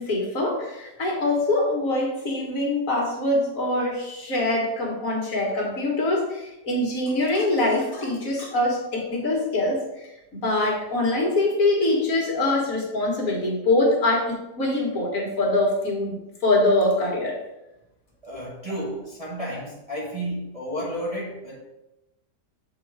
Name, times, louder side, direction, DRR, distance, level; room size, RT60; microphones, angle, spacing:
voice 1, 0.0-16.2 16.4-17.3, left 2 dB, 55° left, -1 dB, 1.9 m, -24 dB
voice 2, 18.2-21.6, equal, 25° right, -4 dB, 1.2 m, -32 dB
7.5 x 3.9 x 4.8 m, 0.94 s
omnidirectional pair, 1.8 m